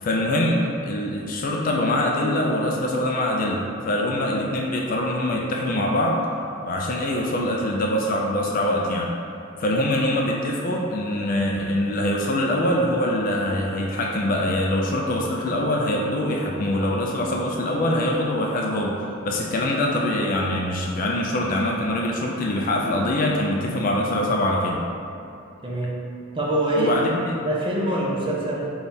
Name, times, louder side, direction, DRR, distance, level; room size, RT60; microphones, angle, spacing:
voice 1, 0.0-6.2 6.6-9.1 9.6-24.8 26.8-27.4, left 1 dB, 40° left, -2 dB, 0.3 m, -24 dB
sound 1, 15.8-21.7, right 3 dB, 65° right, 1.3 m, -44 dB
voice 2, 25.6-26.0 26.3-26.9 27.4-28.7, right 1 dB, 25° right, -3 dB, 0.4 m, -24 dB
3.4 x 2.3 x 4.0 m, 2.6 s
head